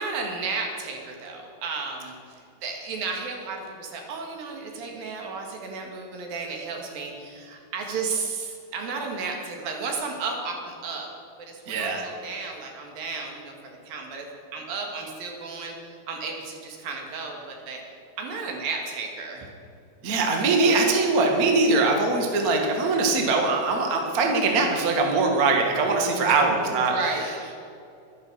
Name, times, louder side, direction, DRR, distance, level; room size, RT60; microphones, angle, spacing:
voice 1, 0.0-11.1 11.4-14.3 14.5-17.8 18.2-19.5 26.3-26.4 26.7-27.5, right 4 dB, 70° right, 1 dB, 3.5 m, -33 dB
voice 2, 11.7-12.0 20.0-26.9, right 3 dB, 45° right, 1 dB, 1.2 m, -22 dB
12.0 x 12.0 x 6.8 m, 2.5 s
omnidirectional pair, 4.4 m